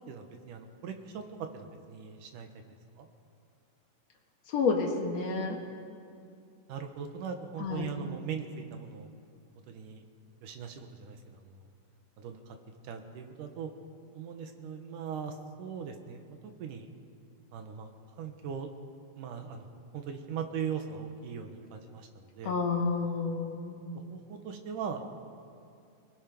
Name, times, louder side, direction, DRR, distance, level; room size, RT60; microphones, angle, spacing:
voice 1, 0.1-2.5 3.0-3.1 6.7-9.1 9.7-10.0 10.4-11.7 12.2-12.6 12.8-13.7 14.1-16.9 17.5-17.9 18.2-18.7 19.2-19.7 19.9-22.6 24.1-25.1, right 7 dB, 70° right, 5 dB, 2.8 m, -40 dB
voice 2, 4.5-5.6 7.6-7.9 22.4-23.9, left 4 dB, 55° left, 2 dB, 2.4 m, -30 dB
24.0 x 20.5 x 5.4 m, 2.4 s
omnidirectional pair, 3.9 m